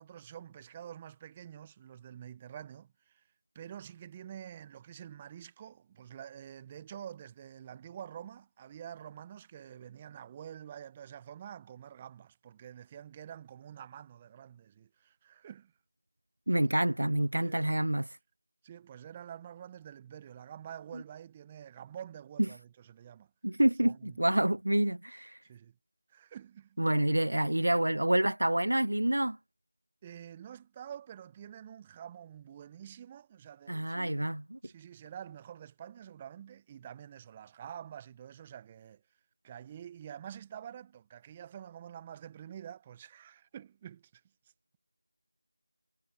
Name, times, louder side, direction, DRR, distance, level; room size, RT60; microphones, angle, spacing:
voice 1, 0.0-3.2 3.5-15.7 17.4-17.8 18.6-23.3 23.8-24.3 25.4-25.8 26.1-26.8 30.0-34.2 34.6-39.0 39.4-44.2, right 9 dB, 15° right, 1.1 m, -47 dB
voice 2, 16.5-18.1 20.9-21.0 23.4-25.4 26.8-29.4 33.7-34.6, right 1 dB, 70° right, 0.5 m, -28 dB
figure-of-eight pair, 170°, 0 cm